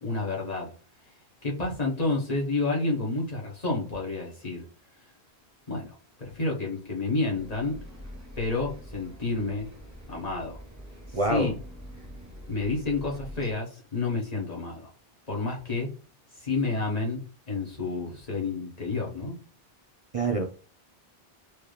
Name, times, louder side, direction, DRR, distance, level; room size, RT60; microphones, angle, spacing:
voice 1, 0.0-0.7 1.4-4.6 5.7-7.8 8.4-9.7 10.1-10.6 11.3-11.5 12.5-14.9 15.3-15.9 16.4-19.4, left 3 dB, 40° left, 1.4 m, -30 dB
Bus, 7.3-13.5, equal, 15° right, 1.0 m, -44 dB
voice 2, 11.1-11.5 20.1-20.4, right 2 dB, 40° right, 0.5 m, -25 dB
4.6 x 2.9 x 3.3 m
omnidirectional pair, 1.0 m